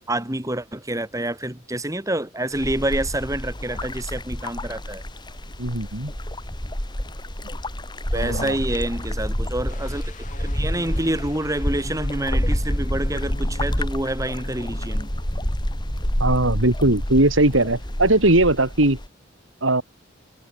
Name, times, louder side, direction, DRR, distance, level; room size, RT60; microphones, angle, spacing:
voice 1, 0.1-5.0 8.1-10.1 10.4-15.1, right 1 dB, 15° right, 2.4 m, -27 dB
sound 1, 2.5-19.1, equal, 25° left, 4.2 m, -28 dB
voice 2, 5.6-6.1 8.1-8.6 16.2-19.0 19.6-19.8, right 2 dB, 85° right, 3.8 m, -19 dB
sound 2, 9.7-15.4 15.7-16.0, left 1 dB, 40° left, 4.1 m, -42 dB
head